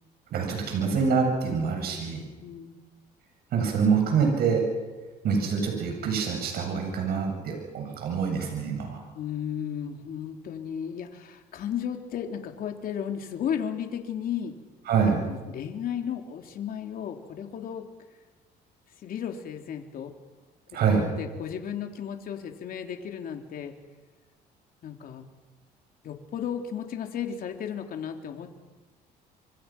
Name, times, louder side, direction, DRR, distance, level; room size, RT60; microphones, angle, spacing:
voice 1, 0.3-2.2 3.5-4.6 5.2-9.0 14.9-15.2 20.7-21.0, right 6 dB, 65° right, 2 dB, 8.0 m, -25 dB
voice 2, 2.4-2.8 9.1-14.6 15.3-17.9 19.0-20.1 20.9-23.7 24.8-25.3 26.0-28.5, left 8 dB, 60° left, 4 dB, 3.6 m, -34 dB
30.0 x 25.5 x 6.2 m, 1.2 s
cardioid pair, 110°, 17 cm